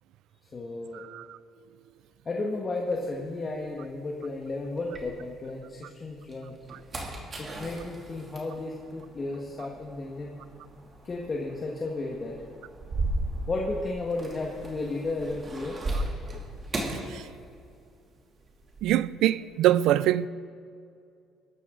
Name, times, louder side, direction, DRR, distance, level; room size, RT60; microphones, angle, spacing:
voice 1, 0.5-1.0 2.2-6.6 7.4-10.3 11.0-12.4 13.5-15.8, left 2 dB, 25° left, 1.5 m, -33 dB
sound 1, 2.9-5.7 6.1-17.9 18.1-19.0, right 2 dB, 25° right, 2.7 m, -37 dB
voice 2, 18.8-20.3, right 13 dB, 70° right, 0.4 m, -23 dB
22.5 x 13.0 x 3.8 m
cardioid pair, 135°, 0 cm